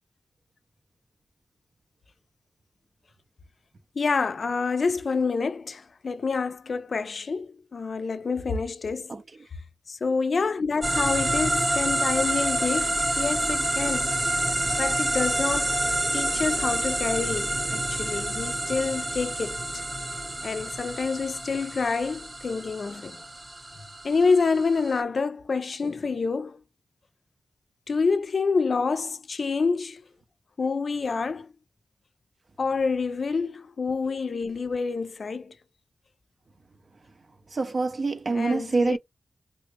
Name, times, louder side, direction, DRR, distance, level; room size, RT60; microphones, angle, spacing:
voice 1, 4.0-9.1 9.9-14.1 14.8-19.8 20.4-23.2 24.0-26.6 27.9-30.0 30.6-31.5 32.6-35.5 38.3-39.0, left 4 dB, 65° left, 0.4 m, -27 dB
sound 1, 10.8-25.0, right 1 dB, 25° right, 0.8 m, -28 dB
voice 2, 37.5-39.0, right 3 dB, 50° right, 0.5 m, -25 dB
3.3 x 2.1 x 2.9 m
wide cardioid pair, 90°, 0 cm